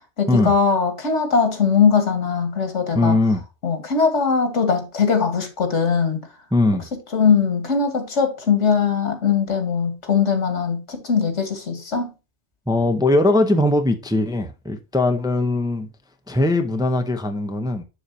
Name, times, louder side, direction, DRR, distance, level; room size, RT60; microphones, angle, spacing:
voice 1, 0.2-3.2 3.6-6.2 7.1-12.1, left 6 dB, 90° left, 1.9 m, -20 dB
voice 2, 2.9-3.4 6.5-6.9 12.7-15.9 16.3-17.8, left 2 dB, 5° right, 0.6 m, -20 dB
7.2 x 6.6 x 2.8 m
omnidirectional pair, 1.2 m